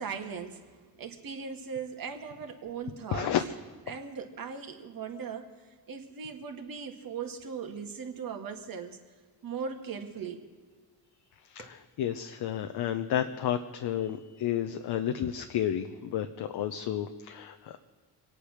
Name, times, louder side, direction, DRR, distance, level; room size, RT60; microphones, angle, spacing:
voice 1, 0.0-3.3 3.9-5.5 5.9-9.0 9.4-10.4 11.6-11.7, right 6 dB, 55° right, 4 dB, 2.1 m, -39 dB
voice 2, 3.1-3.4 11.5-17.8, left 10 dB, 65° left, 6 dB, 0.9 m, -31 dB
24.0 x 8.7 x 6.5 m, 1.5 s
cardioid pair, 75°, 41 cm